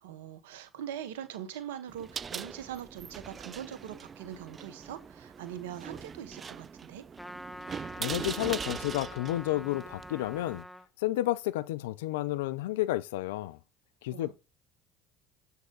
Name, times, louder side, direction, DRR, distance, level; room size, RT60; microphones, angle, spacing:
voice 1, 0.0-7.0 14.1-14.3, right 10 dB, 85° right, 1.1 m, -42 dB
sound 1, 1.9-10.6, right 6 dB, 35° right, 0.4 m, -42 dB
Trumpet, 7.2-10.9, equal, 5° left, 0.7 m, -45 dB
voice 2, 8.0-10.6 11.0-13.6 14.0-14.3, left 16 dB, 85° left, 0.3 m, -31 dB
7.7 x 5.3 x 3.8 m
hypercardioid pair, 80°, 0 cm